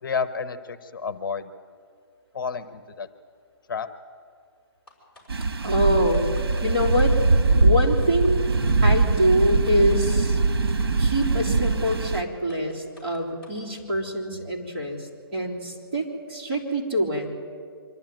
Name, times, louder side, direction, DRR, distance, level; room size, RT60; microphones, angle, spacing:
voice 1, 0.0-1.5 2.3-3.1 3.7-3.9, left 5 dB, 55° left, 12 dB, 1.0 m, -30 dB
sound 1, 4.9-5.3 5.6-5.7 6.1-7.1 7.6-7.7 8.0-8.3 8.7-8.8 9.2-10.2 10.8-10.9 11.2-11.5 11.9-12.0 12.5-13.6, left 1 dB, 5° left, 5.1 m, -52 dB
sound 2, 5.3-12.2, right 3 dB, 75° right, 1.5 m, -22 dB
voice 2, 5.6-6.2 6.6-7.2 7.6-8.4 8.8-10.4 11.0-17.3, equal, 30° right, -3 dB, 3.4 m, -25 dB
25.5 x 12.0 x 9.1 m, 2.2 s
hypercardioid pair, 165°, 13 cm